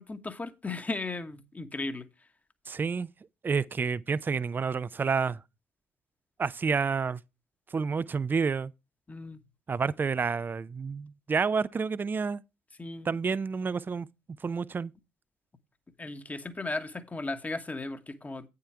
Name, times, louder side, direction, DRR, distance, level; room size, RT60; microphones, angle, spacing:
voice 1, 0.0-2.1 9.1-9.4 12.8-13.2 16.0-18.4, left 3 dB, 20° left, 1.1 m, -36 dB
voice 2, 2.7-3.1 3.4-5.4 6.4-7.2 7.7-8.7 9.7-12.4 13.1-14.1 14.4-14.9, right 5 dB, 25° right, 0.5 m, -29 dB
8.8 x 5.7 x 4.8 m
figure-of-eight pair, 50°, 8 cm